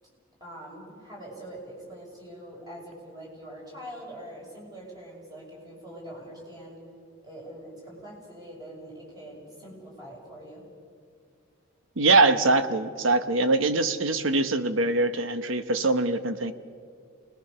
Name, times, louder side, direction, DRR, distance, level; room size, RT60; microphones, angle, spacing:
voice 1, 0.0-6.8 7.2-10.6, right 1 dB, 20° right, -3 dB, 6.7 m, -44 dB
voice 2, 12.0-16.5, right 3 dB, 75° right, 10 dB, 1.1 m, -23 dB
28.0 x 19.5 x 6.9 m, 2.2 s
head